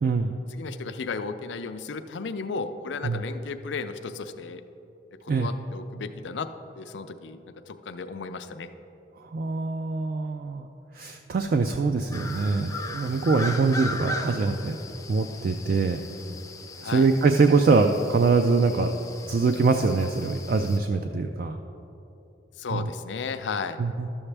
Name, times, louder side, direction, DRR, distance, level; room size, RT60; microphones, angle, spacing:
voice 1, 0.0-0.4 3.0-3.2 5.3-5.5 9.3-10.7 10.9-14.8 15.1-16.0 16.8-18.9 19.3-21.6 22.7-22.9 23.8-24.1, right 4 dB, 55° right, 5 dB, 0.3 m, -23 dB
voice 2, 0.6-4.6 5.2-6.5 6.8-7.4 7.7-8.7 16.8-17.1 22.6-23.8, left 4 dB, 90° left, 9 dB, 0.5 m, -34 dB
sound 1, 12.1-20.8, left 2 dB, 20° left, 0.4 m, -38 dB
12.0 x 7.1 x 3.3 m, 2.9 s
head